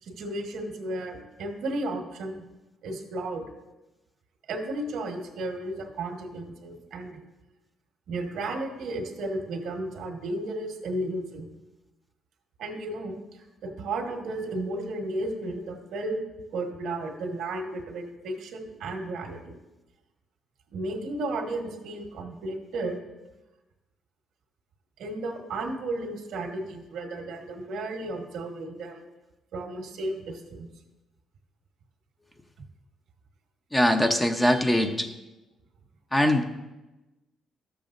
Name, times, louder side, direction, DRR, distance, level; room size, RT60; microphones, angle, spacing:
voice 1, 0.0-2.4 2.8-3.4 4.5-7.2 8.1-11.5 12.6-16.2 16.5-19.6 20.7-23.0 25.0-29.1 29.5-30.7, right 2 dB, 80° right, 3 dB, 1.3 m, -33 dB
voice 2, 33.7-35.1 36.1-36.4, left 1 dB, 10° left, 5 dB, 0.8 m, -22 dB
13.0 x 6.9 x 2.6 m, 1.1 s
cardioid pair, 90°, 0 cm